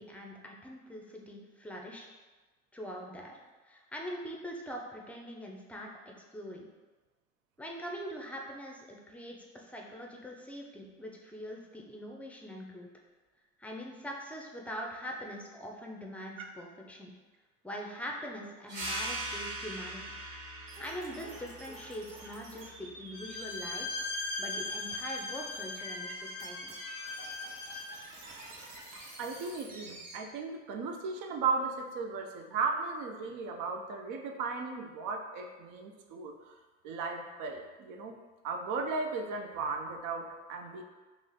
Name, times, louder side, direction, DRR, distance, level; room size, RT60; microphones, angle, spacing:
voice 1, 0.0-2.1 2.7-3.4 3.6-6.7 7.6-12.9 13.6-17.1 17.6-20.0 20.8-24.0 24.4-26.9, equal, 5° left, 0 dB, 0.6 m, -43 dB
sound 1, 18.7-23.9, right 1 dB, 70° right, 1.5 m, -41 dB
sound 2, 20.7-30.2, right 1 dB, 90° right, 0.7 m, -49 dB
Bowed string instrument, 23.1-28.0, left 3 dB, 75° left, 0.6 m, -39 dB
voice 2, 29.2-36.6 36.8-38.2 38.4-40.8, right 4 dB, 55° right, 4 dB, 0.6 m, -36 dB
3.0 x 2.5 x 3.9 m, 1.3 s
hypercardioid pair, 65°, 37 cm